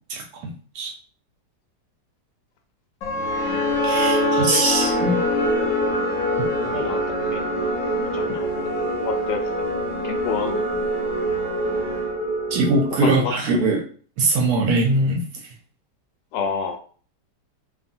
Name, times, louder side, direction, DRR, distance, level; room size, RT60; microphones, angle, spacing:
voice 1, 0.1-0.9 3.8-5.2 6.4-6.5 12.5-13.8 14.2-15.2, right 2 dB, 70° right, 2 dB, 1.0 m, -21 dB
sound 1, 3.0-13.2, equal, 60° left, 0.9 m, -24 dB
voice 2, 4.2-4.6 6.6-7.0 7.3-7.6 8.1-8.5 9.0-9.7 10.0-10.7 13.0-13.3 16.3-16.8, left 6 dB, 80° left, 4 dB, 1.2 m, -29 dB
2.7 x 2.4 x 2.6 m, 0.42 s
omnidirectional pair, 1.9 m